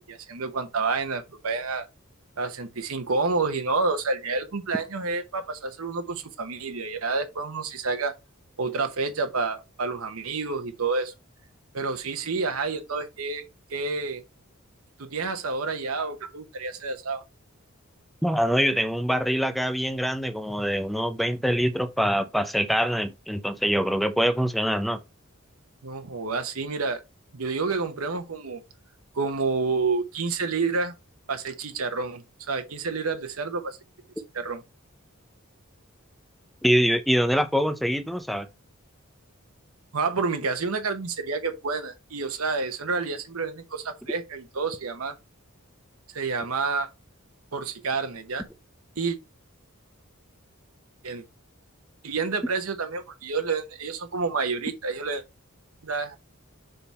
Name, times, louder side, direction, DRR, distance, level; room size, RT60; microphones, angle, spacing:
voice 1, 0.0-1.9 2.4-8.2 8.6-11.1 11.7-13.4 13.7-14.2 15.0-17.2 25.8-27.0 27.3-28.6 29.1-30.9 31.3-33.8 34.3-34.6 39.9-45.1 46.1-46.9 47.5-48.5 49.0-49.2 51.0-51.2 52.0-55.2 55.8-56.2, right 4 dB, 80° right, 1.0 m, -29 dB
voice 2, 18.2-25.0 36.6-38.5, equal, ahead, 0.5 m, -24 dB
6.8 x 3.5 x 4.1 m
head